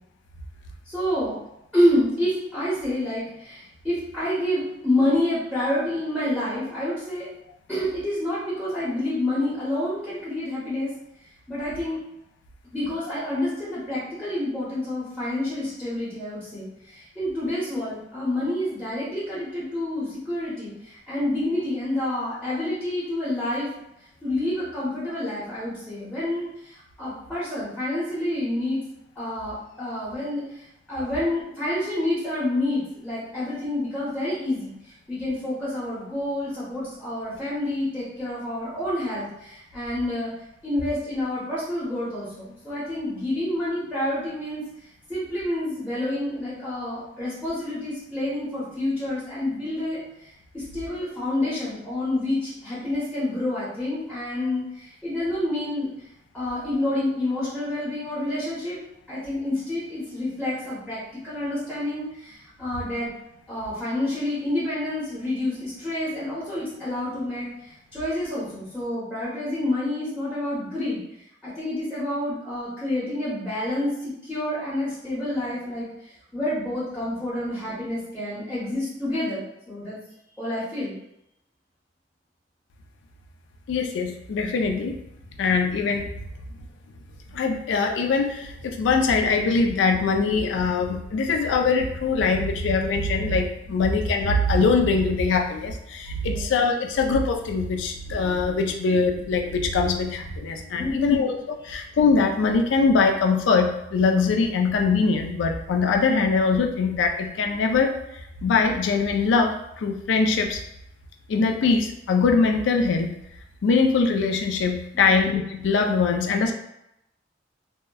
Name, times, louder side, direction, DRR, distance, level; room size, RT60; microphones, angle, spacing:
voice 1, 0.8-1.4 1.7-7.3 7.7-10.9 11.5-12.0 12.7-23.7 24.2-28.8 29.2-30.5 30.9-34.7 35.1-40.3 40.6-44.6 45.1-50.3 50.5-55.9 56.3-58.8 59.1-63.1 63.5-67.5 67.9-71.0 71.4-75.9 76.3-80.0 80.4-80.9 96.2-96.4 100.7-101.2 114.9-115.2, left 1 dB, 5° left, -11 dB, 0.7 m, -28 dB
voice 2, 83.7-84.9 85.4-86.1 87.3-101.4 101.6-107.9 108.4-110.6 111.3-113.1 113.6-116.5, left 4 dB, 70° left, 3 dB, 0.3 m, -22 dB
2.7 x 2.0 x 2.2 m, 0.82 s
head